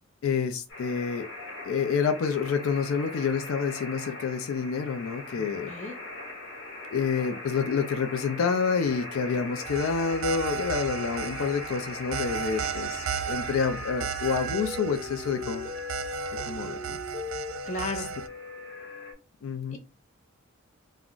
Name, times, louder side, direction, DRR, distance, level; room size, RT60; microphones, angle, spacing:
voice 1, 0.2-1.3 1.6-5.7 6.9-15.7 16.5-17.0 19.4-19.8, left 6 dB, 85° left, 0.4 m, -28 dB
sound 1, 0.7-19.1, left 2 dB, 55° left, 1.2 m, -40 dB
voice 2, 5.4-6.0 17.7-18.1 19.7-19.8, left 2 dB, 35° left, 0.7 m, -35 dB
sound 2, 9.6-18.3, right 8 dB, 70° right, 0.3 m, -35 dB
2.4 x 2.1 x 3.7 m
head